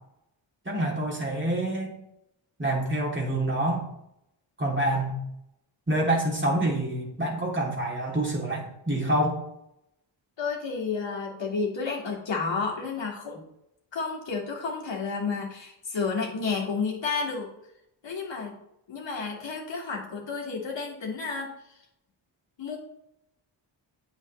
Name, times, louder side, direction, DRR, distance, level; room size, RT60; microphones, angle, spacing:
voice 1, 0.7-1.9 2.6-3.9 4.6-5.2 5.9-9.4, right 1 dB, 25° right, -2 dB, 2.7 m, -27 dB
voice 2, 10.4-13.5 13.9-17.5 18.0-18.6 18.9-21.8 22.6-22.8, left 4 dB, 65° left, -1 dB, 2.2 m, -31 dB
8.1 x 7.3 x 3.2 m, 0.81 s
cardioid pair, 60°, 48 cm